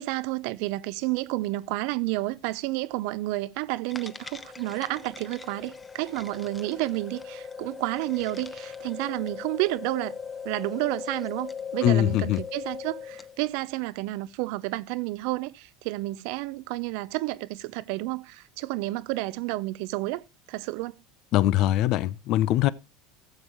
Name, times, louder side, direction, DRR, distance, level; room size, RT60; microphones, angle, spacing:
voice 1, 0.0-10.1 10.4-21.0, right 20 dB, 70° right, 0.5 m, -30 dB
sound 1, 3.9-13.4, left 6 dB, 15° left, 0.8 m, -39 dB
voice 2, 11.8-12.4 21.3-22.7, left 13 dB, 60° left, 0.5 m, -22 dB
14.5 x 7.3 x 3.0 m
supercardioid pair, 100°, 0 cm